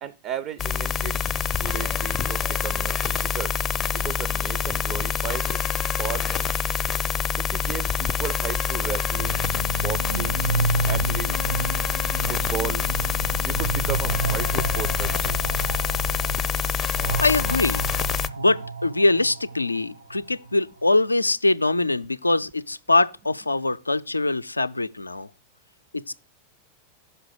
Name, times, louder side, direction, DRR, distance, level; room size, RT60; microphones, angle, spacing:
voice 1, 0.0-1.2 1.6-3.5 3.9-5.6 6.0-6.5 7.4-9.5 9.7-10.5 10.9-11.3 12.3-12.8 13.4-15.4, right 10 dB, 35° right, 0.4 m, -34 dB
sound 1, 0.6-18.3, left 7 dB, 25° left, 0.5 m, -26 dB
sound 2, 8.9-20.8, right 3 dB, 90° right, 1.7 m, -31 dB
sound 3, 10.0-16.5, right 1 dB, 70° right, 0.9 m, -37 dB
voice 2, 17.2-17.8 18.4-25.3 25.9-26.1, left 2 dB, 80° left, 0.3 m, -23 dB
5.9 x 5.6 x 6.9 m
figure-of-eight pair, 90°, 0 cm